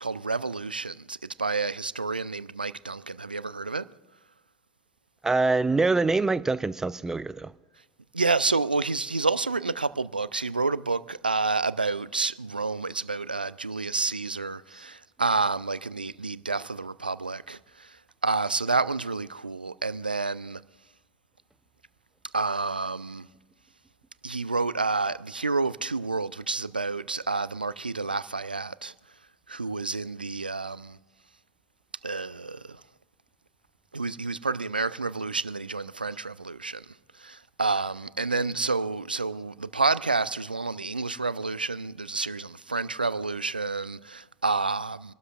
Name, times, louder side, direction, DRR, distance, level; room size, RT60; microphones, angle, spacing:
voice 1, 0.0-3.9 8.1-17.9 18.2-20.6 22.3-23.3 24.2-28.9 29.5-31.0 32.0-32.8 33.9-36.9 37.2-45.1, right 3 dB, 85° right, 0.3 m, -29 dB
voice 2, 5.2-7.5, right 3 dB, 10° right, 0.4 m, -24 dB
26.5 x 12.5 x 2.5 m
figure-of-eight pair, 85°, 5 cm